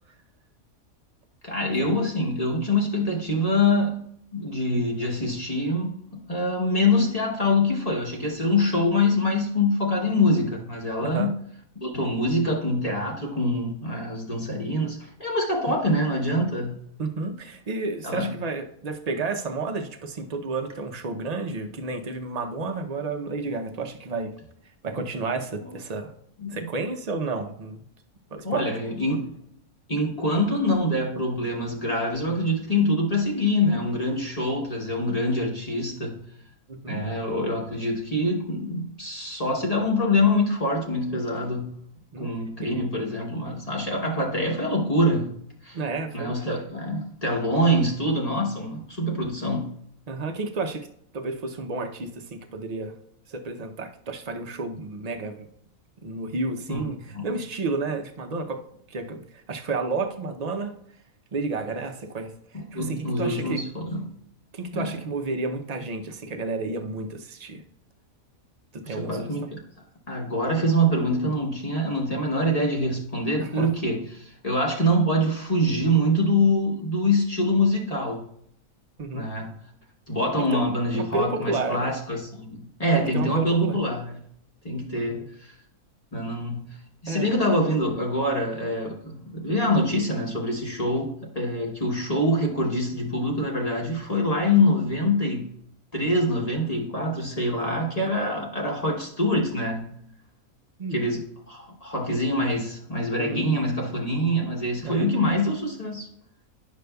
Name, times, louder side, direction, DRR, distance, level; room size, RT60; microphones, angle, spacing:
voice 1, 1.4-11.3 11.7-16.8 18.0-18.3 26.4-26.7 28.4-29.4 29.9-36.2 36.9-41.8 42.2-45.3 45.6-45.8 46.1-49.7 56.7-56.8 57.1-57.3 62.5-64.1 64.7-65.0 68.8-69.6 70.1-78.3 79.1-79.6 80.1-84.2 84.6-85.5 86.1-86.8 87.0-95.5 95.9-100.0 100.9-106.1, left 1 dB, 30° left, 1.0 m, -25 dB
voice 2, 17.0-24.3 24.8-26.1 26.5-27.8 28.3-28.7 36.7-37.1 42.1-42.3 42.6-42.7 45.7-46.3 50.1-50.9 51.1-52.9 53.3-55.5 56.0-58.6 58.9-59.2 59.5-60.8 61.3-62.3 62.7-63.6 64.5-67.6 68.7-69.3 73.4-73.7 79.0-79.3 80.4-80.6 80.9-81.9 83.1-83.8 84.9-85.2 87.1-87.3 100.8-101.0 103.1-103.5 104.8-105.2, right 3 dB, 45° right, 0.5 m, -31 dB
10.0 x 6.5 x 2.3 m
omnidirectional pair, 1.5 m